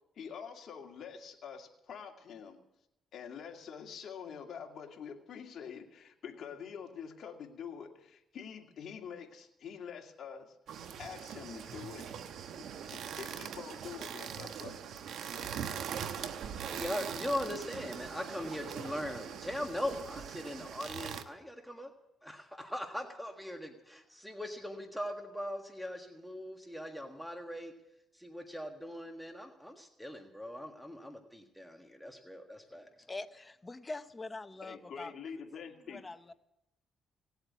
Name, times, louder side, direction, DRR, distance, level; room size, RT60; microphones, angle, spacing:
voice 1, 0.2-2.6 3.1-10.5 11.0-12.2 12.6-14.8 34.6-36.0, left 7 dB, 60° left, 2 dB, 2.2 m, -46 dB
sound 1, 10.7-21.2, right 8 dB, 75° right, 1.0 m, -42 dB
voice 2, 16.7-21.9 22.2-27.7 28.1-32.9, left 1 dB, ahead, 4 dB, 1.6 m, -40 dB
voice 3, 33.1-36.3, left 2 dB, 20° left, 11 dB, 0.9 m, -45 dB
18.0 x 8.0 x 8.3 m, 0.86 s
cardioid pair, 90°, 0 cm